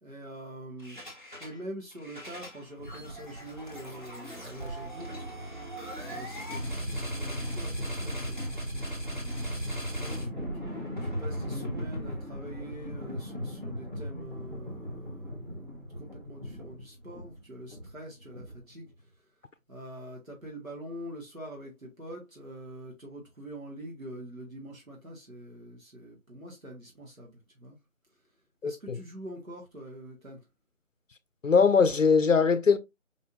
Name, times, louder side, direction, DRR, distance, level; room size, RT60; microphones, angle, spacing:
voice 1, 0.0-1.0 1.4-5.3 6.0-10.5 11.0-19.1 19.7-27.8 28.6-30.4, right 1 dB, 90° right, 2.0 m, -45 dB
sound 1, 0.8-1.6 1.9-18.9, equal, 35° right, 1.3 m, -37 dB
voice 2, 28.6-29.0 31.4-32.8, left 5 dB, 70° left, 0.5 m, -21 dB
5.2 x 3.3 x 2.5 m
figure-of-eight pair, 175°, 40 cm